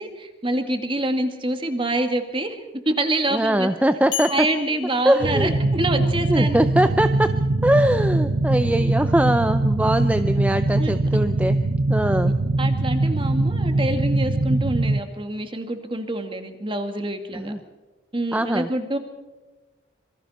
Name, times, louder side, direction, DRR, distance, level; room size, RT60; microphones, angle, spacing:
voice 1, 0.0-2.6 2.9-3.7 4.3-6.7 10.8-10.9 12.2-12.3 12.6-17.5 18.1-19.0, right 1 dB, 30° right, 6 dB, 2.1 m, -26 dB
voice 2, 3.3-4.5 5.0-5.5 6.3-7.4 7.6-11.6 11.9-12.3 17.3-17.6 18.3-18.7, right 1 dB, 10° right, 9 dB, 0.6 m, -21 dB
sound 1, 4.1-6.2, left 10 dB, 85° left, 4.3 m, -35 dB
sound 2, 5.2-15.0, right 2 dB, 65° right, 0.9 m, -22 dB
26.0 x 23.5 x 4.3 m, 1.2 s
head